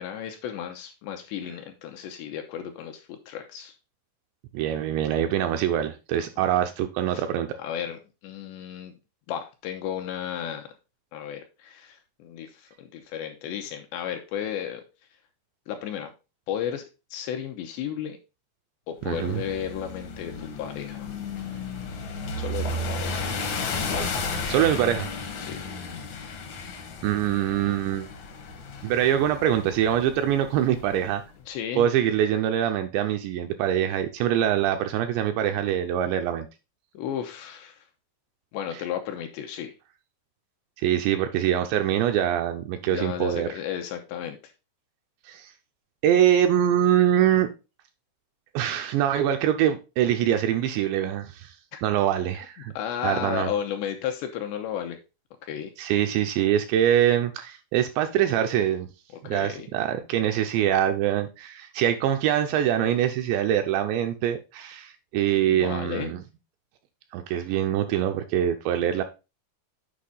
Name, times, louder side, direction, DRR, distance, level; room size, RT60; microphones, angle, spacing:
voice 1, 0.0-3.7 7.1-7.2 7.6-8.9 9.3-10.7 11.1-14.8 15.7-16.1 16.5-18.2 18.9-21.1 22.4-23.3 25.4-25.6 31.5-31.9 36.9-37.9 38.5-39.7 42.8-44.4 51.7-51.8 52.8-55.0 55.4-55.7 59.2-59.7 65.5-66.1, left 9 dB, 80° left, 2.7 m, -33 dB
voice 2, 4.5-7.6 19.1-19.4 24.5-25.1 27.0-28.1 28.8-31.2 31.8-36.5 40.8-43.5 45.3-45.5 46.0-47.5 48.5-51.6 51.8-52.7 53.0-53.5 55.8-58.9 59.2-66.2 67.1-69.0, right 10 dB, 80° right, 2.6 m, -24 dB
sound 1, 19.0-31.2, left 3 dB, 65° left, 1.9 m, -34 dB
8.5 x 5.3 x 3.8 m
omnidirectional pair, 5.5 m